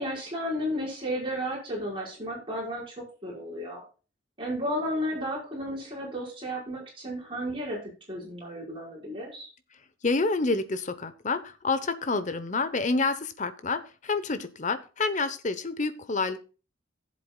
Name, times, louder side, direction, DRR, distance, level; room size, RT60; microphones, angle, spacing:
voice 1, 0.0-3.8 4.4-9.5, equal, 25° right, -4 dB, 5.1 m, -33 dB
voice 2, 9.7-16.4, left 3 dB, 35° left, 11 dB, 0.9 m, -28 dB
16.0 x 7.6 x 2.3 m, 0.34 s
head